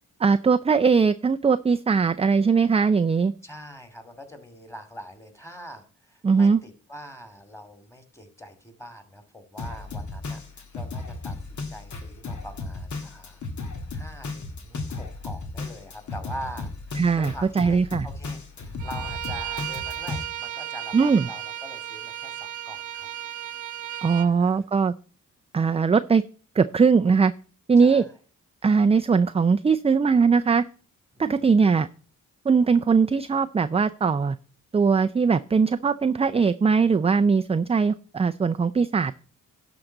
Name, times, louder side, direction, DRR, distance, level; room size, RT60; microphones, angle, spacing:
voice 1, 0.2-3.3 6.2-6.6 17.0-18.1 20.9-21.3 24.0-24.9 25.5-26.2 26.6-27.3 27.7-28.1 28.6-30.7 31.2-31.9 32.5-34.4 34.7-39.1, right 5 dB, 20° right, 10 dB, 0.4 m, -20 dB
voice 2, 3.4-23.1 24.2-24.6 27.8-28.1 31.1-31.2, equal, 10° left, 8 dB, 2.7 m, -43 dB
Drum kit, 9.6-20.2, left 3 dB, 60° left, 1.7 m, -35 dB
Bowed string instrument, 18.8-24.3, right 12 dB, 60° right, 0.8 m, -35 dB
11.5 x 3.9 x 7.8 m, 0.39 s
cardioid pair, 60°, 33 cm